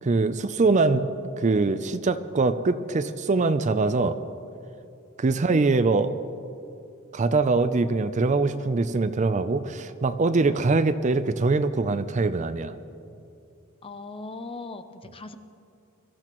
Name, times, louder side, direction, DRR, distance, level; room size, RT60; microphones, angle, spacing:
voice 1, 0.0-1.1 1.4-4.2 5.2-6.2 7.1-12.7, right 3 dB, 35° right, 11 dB, 0.4 m, -23 dB
voice 2, 13.8-15.4, left 3 dB, 25° left, 9 dB, 0.6 m, -39 dB
22.5 x 13.5 x 3.0 m, 2.6 s
head